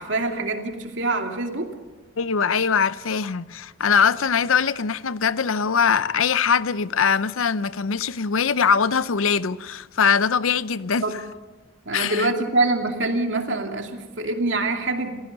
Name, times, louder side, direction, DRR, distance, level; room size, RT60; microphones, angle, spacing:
voice 1, 0.0-1.7 11.0-11.1 11.9-15.1, right 2 dB, 65° right, 2.5 m, -25 dB
voice 2, 2.2-11.2 11.9-12.3, left 6 dB, 80° left, 0.6 m, -22 dB
28.5 x 15.5 x 6.8 m
head